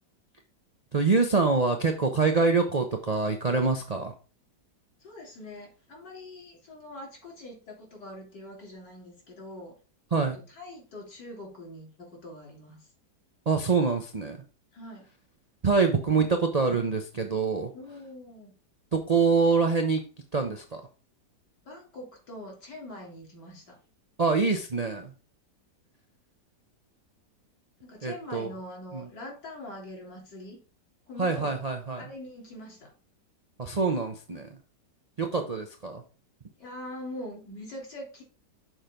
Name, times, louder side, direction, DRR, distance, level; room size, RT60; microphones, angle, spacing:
voice 1, 0.9-4.1 10.1-10.4 13.5-14.4 15.6-17.7 18.9-20.0 20.3-20.8 24.2-25.1 28.0-28.5 28.9-29.1 31.2-32.0 33.6-34.5 35.2-36.0, right 4 dB, 50° right, 4 dB, 0.4 m, -25 dB
voice 2, 5.0-9.7 10.3-12.9 14.7-15.1 17.7-18.5 21.7-23.8 27.8-30.6 31.1-31.6 32.0-32.9 36.6-38.2, left 1 dB, 70° left, -1 dB, 3.8 m, -43 dB
6.4 x 4.6 x 5.0 m, 0.35 s
omnidirectional pair, 1.9 m